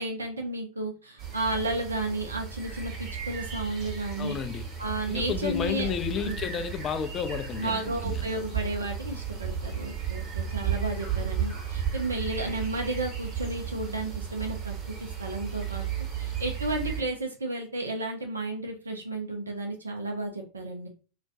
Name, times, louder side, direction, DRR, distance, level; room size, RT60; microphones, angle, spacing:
voice 1, 0.0-4.4 4.8-5.9 6.2-6.4 7.6-14.9 15.2-15.8 16.2-20.9, right 2 dB, 85° right, 0.4 m, -32 dB
sound 1, 1.2-17.0, right 8 dB, 40° right, 1.1 m, -34 dB
voice 2, 4.2-4.7 5.1-8.3, left 8 dB, 35° left, 0.3 m, -32 dB
2.3 x 2.1 x 2.7 m
figure-of-eight pair, 85°, 0 cm